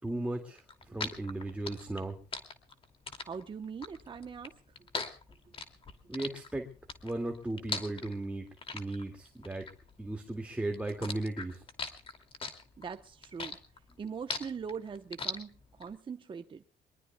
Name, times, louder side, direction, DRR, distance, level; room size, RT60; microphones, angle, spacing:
voice 1, 0.0-2.2 6.1-6.7 7.0-9.7 10.0-11.6, right 2 dB, 5° right, 2.3 m, -36 dB
sound 1, 0.6-10.4 10.7-15.9, left 4 dB, 35° left, 2.7 m, -40 dB
voice 2, 3.3-4.6 5.4-5.6 12.8-13.6 14.0-16.6, right 6 dB, 30° right, 1.0 m, -41 dB
24.0 x 21.0 x 2.3 m
cardioid pair, 110°, 17 cm